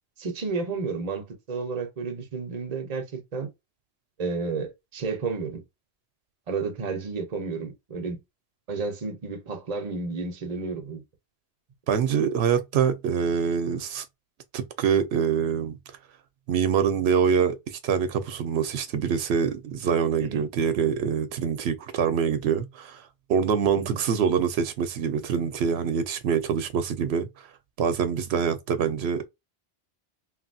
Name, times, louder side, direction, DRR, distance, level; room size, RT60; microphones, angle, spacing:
voice 1, 0.2-3.5 4.2-5.6 6.5-8.2 8.7-11.0 20.2-20.4 23.8-24.0, right 4 dB, 40° right, 0.8 m, -31 dB
voice 2, 11.9-14.0 14.5-15.8 16.5-23.0 23.3-27.5 27.8-29.3, right 7 dB, 80° right, 0.9 m, -25 dB
3.1 x 2.6 x 2.5 m
omnidirectional pair, 1.1 m